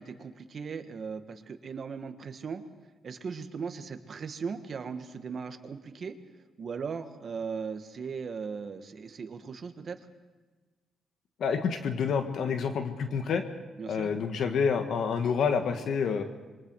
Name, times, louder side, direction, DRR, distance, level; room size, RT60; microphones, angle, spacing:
voice 1, 0.0-2.6 3.0-10.1 13.8-14.1, right 5 dB, 45° right, 8 dB, 1.7 m, -38 dB
voice 2, 11.4-13.4 13.9-16.2, left 6 dB, 65° left, 6 dB, 1.6 m, -28 dB
27.0 x 23.5 x 4.8 m, 1.3 s
cardioid pair, 110°, 0 cm